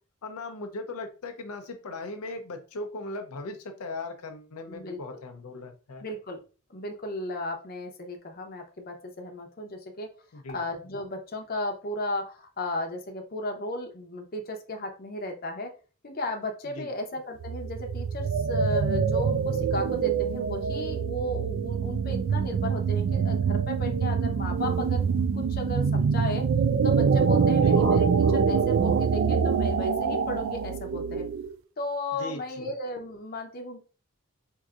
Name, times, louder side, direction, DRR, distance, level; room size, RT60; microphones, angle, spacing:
voice 1, 0.2-6.0 10.3-10.6 16.7-16.9 27.5-27.8 32.2-32.7, left 2 dB, 80° left, 5 dB, 0.5 m, -38 dB
voice 2, 4.7-5.2 6.0-6.4 6.7-10.1 10.5-15.7 16.0-25.0 25.3-26.4 26.8-31.2 31.8-33.8, left 1 dB, 40° left, 4 dB, 0.7 m, -35 dB
sound 1, 17.4-31.5, right 6 dB, 60° right, 0.3 m, -25 dB
4.6 x 2.6 x 2.4 m, 0.36 s
head